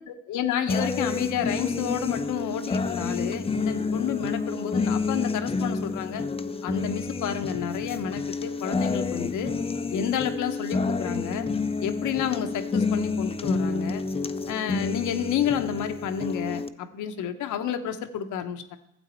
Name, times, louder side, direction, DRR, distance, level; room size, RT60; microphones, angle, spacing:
voice 1, 0.0-6.2 6.6-9.5 9.9-11.5 11.8-14.0 14.5-18.8, left 8 dB, 85° left, 8 dB, 1.0 m, -30 dB
sound 1, 0.7-16.7, left 4 dB, 20° left, 0.5 m, -29 dB
12.5 x 7.8 x 4.4 m, 0.85 s
cardioid pair, 90°, 30 cm